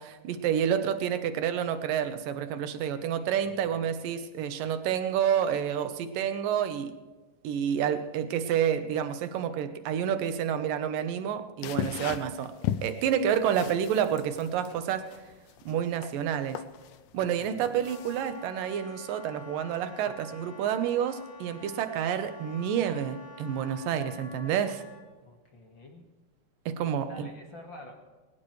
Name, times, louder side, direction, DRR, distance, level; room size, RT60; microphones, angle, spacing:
voice 1, 0.0-6.9 7.4-12.5 12.8-15.1 15.7-16.6 17.1-24.8 26.7-27.3, right 9 dB, 80° right, 9 dB, 2.7 m, -29 dB
voice 2, 2.9-3.8 17.4-17.8 25.2-26.0 27.0-27.9, left 1 dB, 40° left, 2 dB, 2.1 m, -48 dB
sound 1, 11.6-18.4, left 11 dB, 85° left, 2.3 m, -37 dB
Wind instrument woodwind instrument, 17.5-25.0, left 3 dB, 25° left, 1.6 m, -49 dB
21.5 x 19.0 x 3.3 m, 1.3 s
omnidirectional pair, 4.0 m